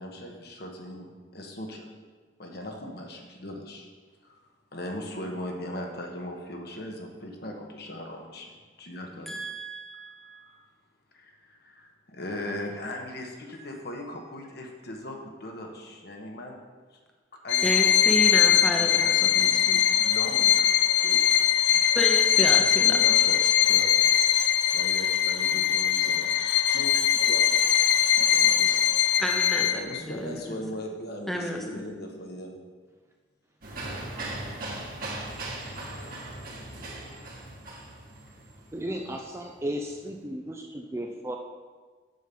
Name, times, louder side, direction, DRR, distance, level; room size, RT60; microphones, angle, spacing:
voice 1, 0.0-1.9 2.4-3.9 4.2-4.4 4.7-9.3 10.3-10.6 11.1-16.6 16.9-17.0 17.4-21.4 21.7-21.9 22.8-24.0 24.7-28.8 29.7-32.6, left 1 dB, 55° left, 1.3 m, -39 dB
voice 2, 9.3-10.5 17.6-19.8 21.9-23.0 29.2-30.6 31.3-31.8, equal, ahead, 0.9 m, -31 dB
Bowed string instrument, 17.5-30.0, left 10 dB, 70° left, 0.5 m, -22 dB
sound 1, 33.6-40.1, right 2 dB, 50° right, 1.6 m, -38 dB
voice 3, 38.7-41.4, equal, 15° right, 0.5 m, -34 dB
7.7 x 7.3 x 5.5 m
head